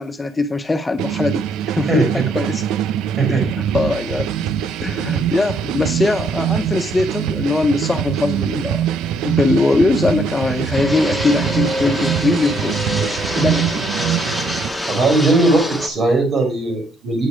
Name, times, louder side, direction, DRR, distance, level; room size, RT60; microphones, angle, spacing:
voice 1, 0.0-2.6 3.3-4.3 4.8-8.8 9.2-12.8 13.4-13.8, left 3 dB, 15° left, 0.6 m, -21 dB
sound 1, 1.0-14.7, right 11 dB, 80° right, 0.6 m, -23 dB
voice 2, 3.2-3.5 14.9-17.3, right 2 dB, 40° right, 5.2 m, -18 dB
Fixed-wing aircraft airplane, 10.7-15.9, left 1 dB, ahead, 1.6 m, -25 dB
9.0 x 6.4 x 4.7 m
cardioid pair, 115°, 0 cm